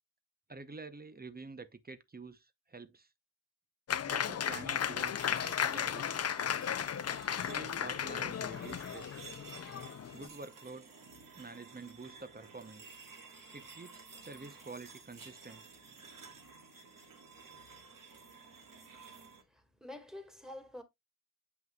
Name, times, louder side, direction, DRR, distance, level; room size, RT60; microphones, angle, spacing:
voice 1, 0.5-3.1 4.1-6.4 7.4-9.2 10.1-10.9 11.4-12.9 13.5-15.6, right 3 dB, 25° right, 0.7 m, -48 dB
Applause, 3.9-10.3, left 8 dB, 40° left, 0.5 m, -35 dB
sound 1, 5.2-19.4, right 4 dB, 55° right, 1.8 m, -53 dB
voice 2, 19.5-20.8, left 1 dB, ahead, 1.9 m, -48 dB
7.7 x 5.6 x 2.3 m
cardioid pair, 70°, 38 cm